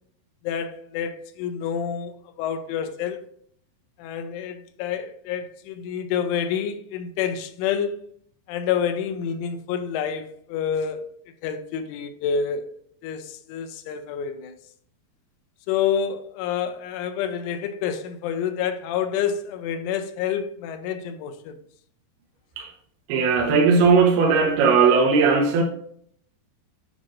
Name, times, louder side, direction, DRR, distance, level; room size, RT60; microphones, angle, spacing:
voice 1, 0.4-2.1 2.4-3.2 4.0-8.0 8.5-11.1 11.4-12.7 13.0-14.5 15.7-21.6, left 8 dB, 85° left, 3.0 m, -28 dB
voice 2, 23.1-25.6, right 5 dB, 75° right, 2.4 m, -18 dB
9.0 x 6.2 x 2.5 m
omnidirectional pair, 5.8 m